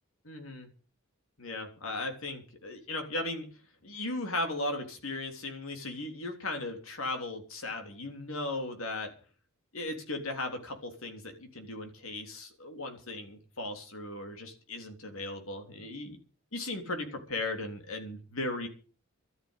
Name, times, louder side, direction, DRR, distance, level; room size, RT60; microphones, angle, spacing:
voice 1, 0.3-0.7 1.4-3.5 3.8-9.1 9.7-16.2 16.5-18.7, left 2 dB, 75° left, 5 dB, 3.5 m, -37 dB
13.0 x 9.4 x 8.3 m, 0.40 s
head